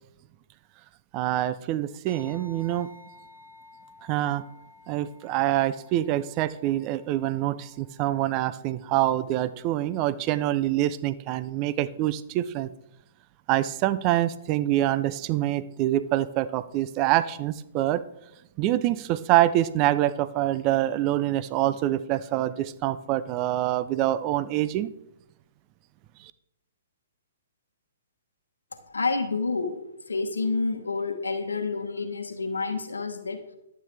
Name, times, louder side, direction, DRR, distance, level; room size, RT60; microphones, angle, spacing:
voice 1, 1.1-2.9 4.0-4.4 4.9-12.7 13.5-18.0 18.6-24.9, right 14 dB, 30° right, 15 dB, 0.5 m, -25 dB
sound 1, 2.1-10.8, left 3 dB, 80° right, 3.6 m, -54 dB
voice 2, 28.7-33.6, left 3 dB, 80° left, 7 dB, 1.1 m, -29 dB
11.5 x 8.8 x 3.4 m, 0.84 s
figure-of-eight pair, 125°, 0 cm